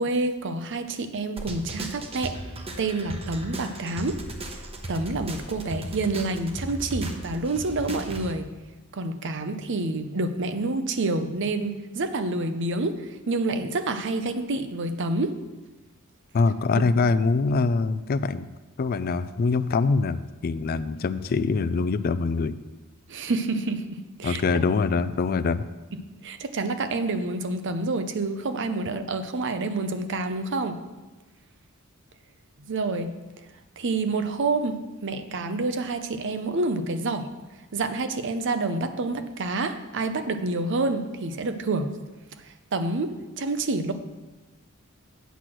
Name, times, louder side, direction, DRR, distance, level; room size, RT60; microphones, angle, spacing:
voice 1, 0.0-2.4 2.8-4.2 4.5-4.6 4.9-8.5 8.9-15.4 23.1-24.4 26.2-30.8 32.6-33.1 33.8-37.3 37.7-41.9 42.4-43.9, right 2 dB, 60° right, 9 dB, 0.7 m, -28 dB
sound 1, 1.4-8.3, right 1 dB, 30° right, 0.9 m, -36 dB
voice 2, 16.3-18.5 18.8-22.6 24.2-25.6, left 4 dB, 45° left, 14 dB, 0.4 m, -24 dB
8.2 x 6.2 x 6.0 m, 1.1 s
head